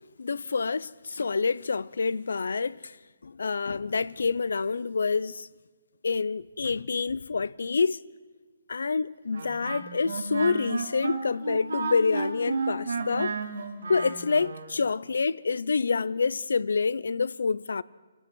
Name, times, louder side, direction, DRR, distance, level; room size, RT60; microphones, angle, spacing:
voice 1, 0.2-2.9 3.2-5.5 6.0-8.0 8.7-13.3 13.9-17.8, left 4 dB, 80° left, 0.6 m, -27 dB
Wind instrument woodwind instrument, 9.3-14.7, right 4 dB, 85° right, 6.0 m, -32 dB
28.0 x 18.5 x 6.3 m
hypercardioid pair, 160°, 0 cm